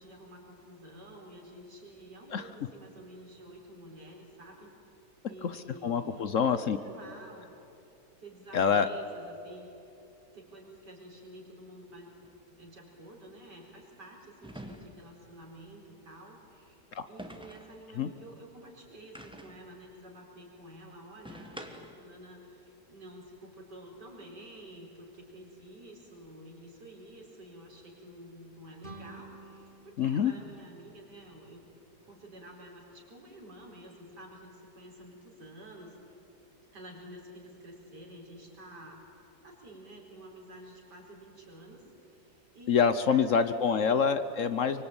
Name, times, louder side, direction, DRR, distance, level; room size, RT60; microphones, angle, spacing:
voice 1, 0.0-4.7 5.3-7.5 8.2-9.7 10.3-31.6 32.0-35.9 36.7-43.8, right 1 dB, 80° right, -1 dB, 5.3 m, -50 dB
voice 2, 5.8-6.8 8.5-8.9 16.9-17.0 17.9-18.1 30.0-30.3 42.7-44.8, left 6 dB, 55° left, 11 dB, 1.1 m, -26 dB
sound 1, 12.2-12.4 14.4-15.2 17.2-17.8 19.1-19.7 21.2-22.1, equal, 5° right, 1.4 m, -46 dB
sound 2, 28.8-31.6, right 2 dB, 30° right, 2.3 m, -51 dB
24.5 x 24.0 x 8.8 m, 2.8 s
omnidirectional pair, 1.8 m